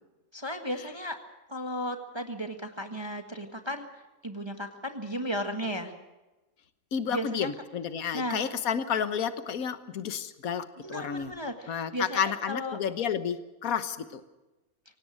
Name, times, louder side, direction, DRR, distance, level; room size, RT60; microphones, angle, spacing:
voice 1, 0.3-1.2 1.5-5.9 7.1-7.5 8.1-8.5 10.8-12.8, equal, 20° right, 5 dB, 1.6 m, -35 dB
voice 2, 6.9-11.3 11.7-14.2, left 7 dB, 75° left, 11 dB, 1.6 m, -31 dB
25.0 x 18.0 x 6.5 m, 1.1 s
omnidirectional pair, 1.5 m